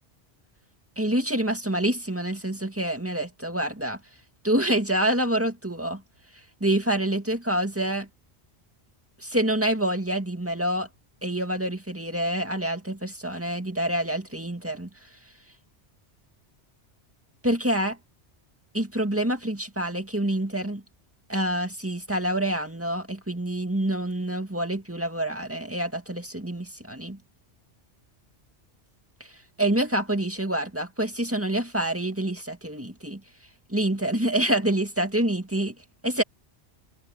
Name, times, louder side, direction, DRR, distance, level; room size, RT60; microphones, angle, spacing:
voice 1, 1.0-4.0 4.4-6.0 6.6-8.1 9.2-10.9 11.2-14.9 17.4-18.0 18.7-20.8 21.3-27.2 29.6-33.2 33.7-35.8 36.0-36.2, right 1 dB, 10° right, 2.0 m, -27 dB
omnidirectional pair, 1.2 m